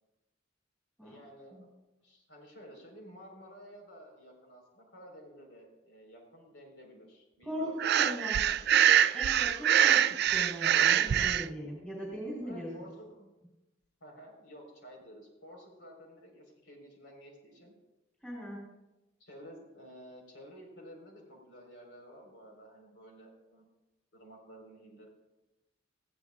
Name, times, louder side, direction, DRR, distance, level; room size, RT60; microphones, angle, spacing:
voice 1, 1.0-1.6 2.0-9.2 12.4-13.3 14.0-17.7 19.2-23.7 24.1-25.1, equal, 75° left, 1 dB, 4.5 m, -52 dB
voice 2, 7.4-8.8 9.1-12.9 18.2-18.6, equal, 5° left, -4 dB, 3.6 m, -39 dB
Breathing, 7.8-11.4, right 10 dB, 60° right, 0.4 m, -24 dB
19.0 x 15.5 x 2.5 m, 1.0 s
head